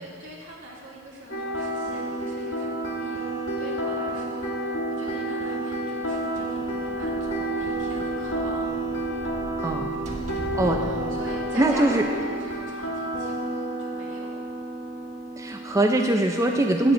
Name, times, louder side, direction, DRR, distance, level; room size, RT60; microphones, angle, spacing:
voice 1, 0.0-4.5 5.0-8.6 10.8-14.3, right 1 dB, 70° right, -4 dB, 2.4 m, -43 dB
sound 1, 1.3-15.8, right 1 dB, 70° left, 2.0 m, -30 dB
sound 2, 6.0-12.7, right 1 dB, 40° right, 1.2 m, -40 dB
voice 2, 9.6-9.9 10.5-10.9 11.6-12.0 15.4-16.9, right 1 dB, 15° right, 3 dB, 0.4 m, -22 dB
11.5 x 4.9 x 8.1 m, 2.1 s
head